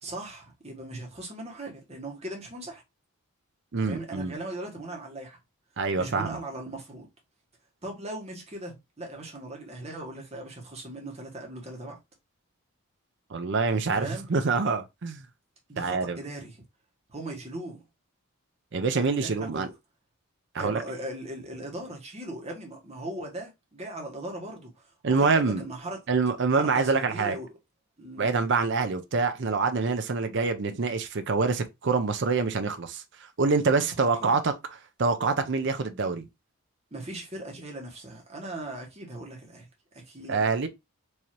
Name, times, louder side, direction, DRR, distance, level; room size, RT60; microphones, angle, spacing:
voice 1, 0.0-2.8 3.8-5.4 6.0-7.1 7.8-12.0 13.9-14.2 15.7-16.6 17.1-17.8 19.2-19.7 20.6-26.0 26.5-27.5 28.0-28.4 33.7-34.4 36.9-39.7 39.9-40.7, right 1 dB, 30° right, 1.3 m, -39 dB
voice 2, 3.7-4.3 5.8-6.4 13.3-15.3 15.8-16.2 18.7-19.7 20.5-20.8 25.0-25.6 26.1-27.4 28.2-33.0 33.4-34.5 35.0-36.3 40.3-40.7, right 4 dB, 55° right, 0.5 m, -26 dB
4.7 x 2.8 x 2.8 m
head